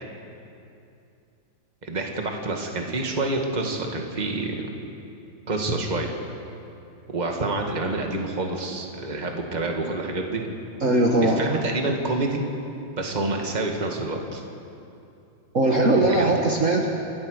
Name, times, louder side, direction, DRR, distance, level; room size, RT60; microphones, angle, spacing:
voice 1, 1.8-4.7 5.5-6.1 7.1-10.4 11.2-12.4 13.0-14.4 15.8-16.3, right 2 dB, 20° right, 2 dB, 1.9 m, -28 dB
voice 2, 10.8-11.4 15.5-16.9, right 2 dB, 40° right, -1 dB, 1.8 m, -20 dB
30.0 x 14.0 x 6.5 m, 2.7 s
omnidirectional pair, 2.1 m